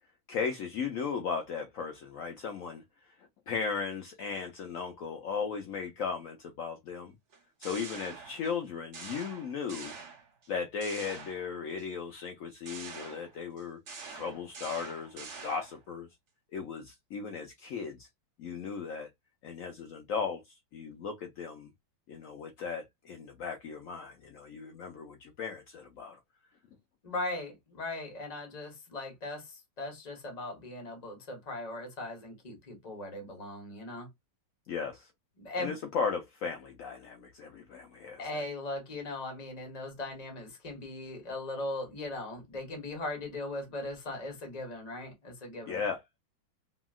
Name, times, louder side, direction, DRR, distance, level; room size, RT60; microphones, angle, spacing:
voice 1, 0.3-7.1 7.6-9.9 10.5-13.8 14.1-16.1 16.5-18.1 18.4-19.1 19.4-21.7 22.1-26.2 34.7-35.1 35.6-38.4 45.7-46.0, left 5 dB, 80° left, 0.7 m, -36 dB
sound 1, 7.3-8.6 8.9-10.5 10.8-11.8 12.6-15.8, right 4 dB, 50° right, 1.0 m, -46 dB
voice 2, 27.0-34.1 35.4-35.7 38.2-45.8, left 2 dB, 30° left, 0.8 m, -39 dB
2.9 x 2.7 x 2.3 m
omnidirectional pair, 2.0 m